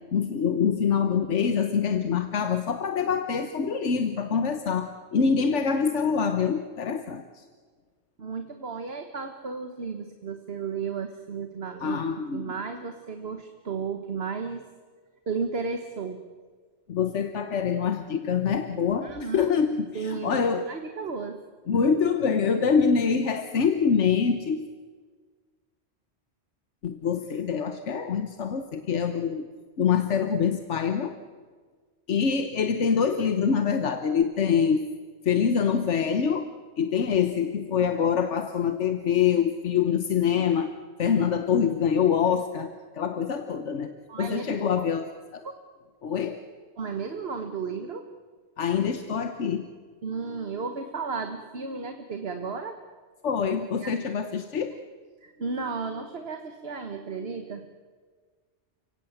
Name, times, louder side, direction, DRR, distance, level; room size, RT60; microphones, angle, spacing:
voice 1, 0.1-7.4 11.8-12.5 16.9-20.7 21.7-24.7 26.8-29.4 29.8-31.1 32.1-34.9 35.2-36.5 36.8-40.7 41.0-43.9 44.2-45.5 46.0-46.4 48.6-49.7 53.2-54.8, left 6 dB, 90° left, 8 dB, 1.4 m, -25 dB
voice 2, 8.2-12.0 12.3-14.6 15.3-16.2 19.0-19.5 19.9-20.4 20.7-21.4 44.1-44.5 45.4-45.5 46.8-48.1 50.0-52.8 53.8-53.9 55.2-57.7, right 5 dB, 60° right, 6 dB, 1.6 m, -33 dB
29.5 x 17.5 x 7.9 m, 1.5 s
omnidirectional pair, 1.2 m